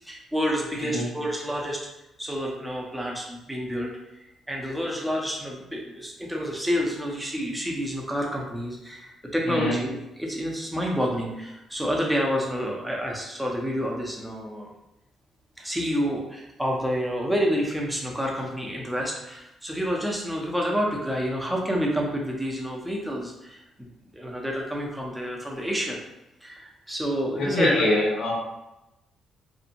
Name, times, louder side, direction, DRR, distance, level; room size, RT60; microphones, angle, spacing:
voice 1, 0.0-1.8 2.2-3.9 4.5-9.9 10.2-14.7 15.6-26.0 26.4-27.9, equal, 5° right, -1 dB, 0.6 m, -29 dB
voice 2, 27.4-28.3, left 2 dB, 80° left, -5 dB, 0.8 m, -24 dB
2.7 x 2.1 x 2.5 m, 0.93 s
cardioid pair, 90°, 0 cm